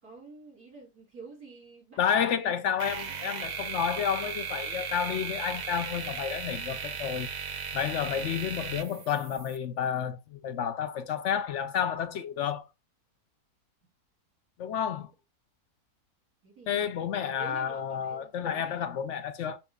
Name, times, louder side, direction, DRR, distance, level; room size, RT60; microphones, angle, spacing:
voice 1, 0.0-3.2 16.4-17.0 17.4-19.0, right 4 dB, 70° right, 3.6 m, -49 dB
voice 2, 2.0-7.3 7.7-12.6 14.6-15.1 16.7-19.6, left 8 dB, 65° left, 0.8 m, -30 dB
sound 1, 2.8-9.6, right 6 dB, 50° right, 0.5 m, -36 dB
7.6 x 6.1 x 2.2 m
omnidirectional pair, 1.6 m